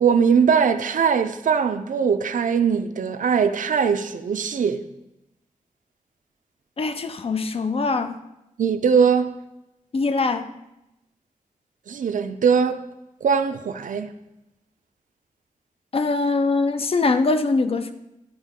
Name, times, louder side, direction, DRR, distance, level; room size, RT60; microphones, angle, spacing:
voice 1, 0.0-4.8 8.6-9.3 11.9-12.8 13.2-14.1, right 6 dB, 75° right, 0.5 m, -21 dB
voice 2, 6.8-8.1 9.9-10.5 15.9-17.9, left 3 dB, 45° left, 0.6 m, -22 dB
11.0 x 4.4 x 3.7 m
wide cardioid pair, 115°, 14 cm